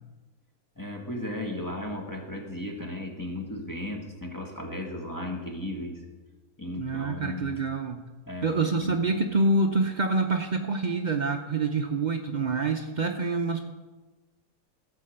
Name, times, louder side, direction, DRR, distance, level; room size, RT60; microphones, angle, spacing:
voice 1, 0.8-6.0 6.6-7.6 8.3-9.0, left 1 dB, 15° left, 0 dB, 1.4 m, -35 dB
voice 2, 6.8-8.0 8.4-13.7, right 3 dB, 80° right, 4 dB, 0.4 m, -26 dB
13.5 x 5.0 x 7.7 m, 1.3 s
omnidirectional pair, 1.7 m